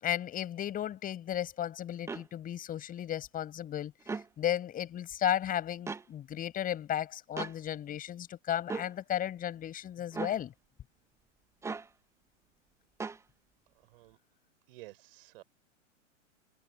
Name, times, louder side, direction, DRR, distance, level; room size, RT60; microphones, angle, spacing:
voice 1, 0.0-3.9 4.4-10.5, left 11 dB, 20° left, 6.1 m, -34 dB
sound 1, 2.1-2.3 4.0-4.3 5.9-6.1 7.4-7.6 8.7-8.9 10.1-10.4 11.6-11.9 13.0-13.2, right 4 dB, 5° right, 1.2 m, -37 dB
voice 2, 14.7-15.4, right 19 dB, 45° right, 4.1 m, -51 dB
figure-of-eight pair, 110°, 39 cm